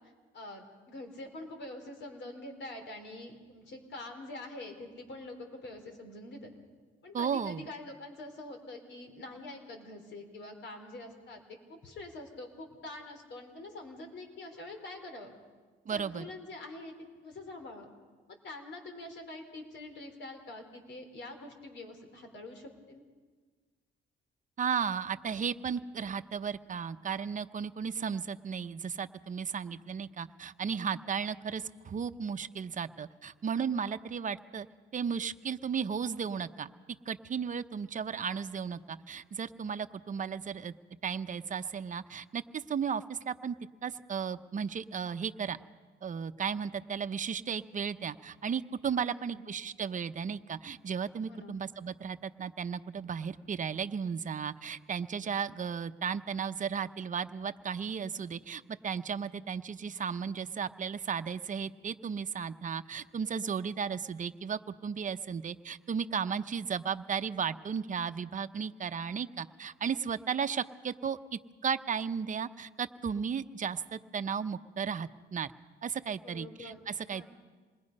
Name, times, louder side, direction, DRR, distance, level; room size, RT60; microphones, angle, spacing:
voice 1, 0.3-6.5 7.0-11.4 11.7-15.3 15.9-16.9 17.2-17.9 18.4-23.0 49.0-49.4 51.3-51.5 76.2-76.8 77.1-77.3, left 2 dB, 65° left, 5 dB, 4.0 m, -45 dB
voice 2, 7.1-7.7 15.9-16.3 24.6-34.7 34.9-36.7 37.1-40.7 41.0-43.6 43.8-45.6 46.0-75.5 75.8-77.3, right 6 dB, 40° right, 10 dB, 0.8 m, -35 dB
27.0 x 21.0 x 5.4 m, 1.4 s
cardioid pair, 90°, 20 cm